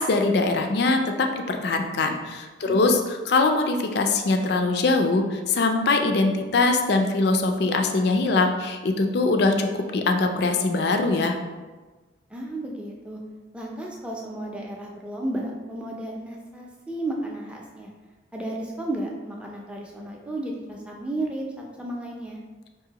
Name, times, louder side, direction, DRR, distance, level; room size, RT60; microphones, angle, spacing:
voice 1, 0.0-11.4, left 3 dB, 55° left, 4 dB, 0.4 m, -22 dB
voice 2, 2.6-3.0 12.3-13.2 13.5-17.9 18.3-21.4 21.8-22.4, right 1 dB, 5° right, -1 dB, 0.4 m, -33 dB
4.8 x 2.6 x 2.8 m, 1.3 s
head